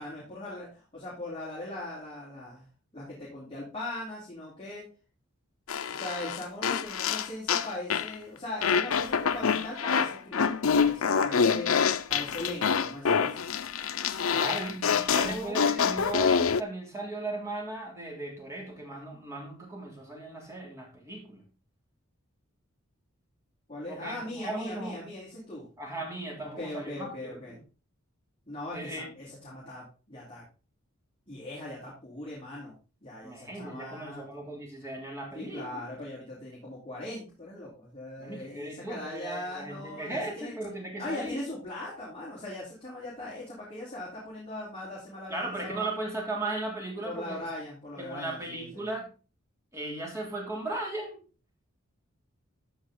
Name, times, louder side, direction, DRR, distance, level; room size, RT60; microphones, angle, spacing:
voice 1, 0.0-2.7 2.9-4.8 5.9-11.7 12.1-13.4 14.2-15.6 23.7-25.6 26.4-27.5 28.5-30.4 31.3-34.2 35.3-40.5 41.0-45.9 47.0-48.9, left 1 dB, 25° left, -6 dB, 3.9 m, -40 dB
sound 1, 5.7-8.1 8.6-16.6, left 6 dB, 75° left, 0.7 m, -26 dB
voice 2, 14.3-21.4 23.9-25.0 25.8-27.6 28.7-29.0 33.2-35.8 38.2-41.5 45.3-47.4 48.0-49.1 49.7-51.2, right 2 dB, 15° right, -1 dB, 3.1 m, -37 dB
14.0 x 5.5 x 3.9 m, 0.34 s
head